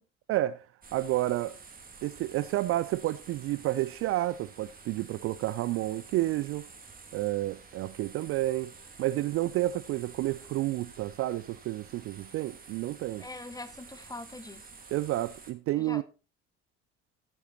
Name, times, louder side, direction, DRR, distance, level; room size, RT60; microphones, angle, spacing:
voice 1, 0.3-0.7 0.9-1.6 2.0-6.7 7.1-8.7 9.0-13.3 14.9-16.0, right 16 dB, 40° right, 0.5 m, -30 dB
sound 1, 0.8-15.5, right 4 dB, 25° right, 2.5 m, -50 dB
voice 2, 13.2-14.6 15.8-16.0, left 2 dB, 10° left, 1.3 m, -42 dB
14.5 x 6.8 x 4.4 m
figure-of-eight pair, 55°, 36 cm